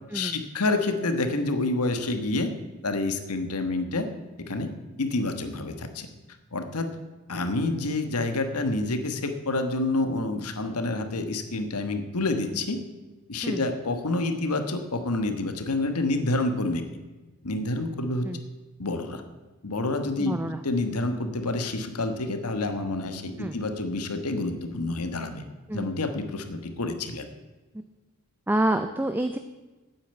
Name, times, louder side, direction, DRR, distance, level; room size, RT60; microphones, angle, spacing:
voice 1, 0.1-2.5 2.8-4.1 4.4-4.7 5.0-6.1 6.5-6.9 7.3-12.8 13.3-16.8 17.4-18.3 18.8-19.2 19.6-25.4 25.7-27.3, left 2 dB, 90° left, 8 dB, 1.3 m, -28 dB
voice 2, 20.2-20.6 23.4-23.6 25.7-25.9 27.7-27.8 28.5-29.4, right 1 dB, 10° right, 8 dB, 0.4 m, -27 dB
8.8 x 8.8 x 8.9 m, 1.2 s
head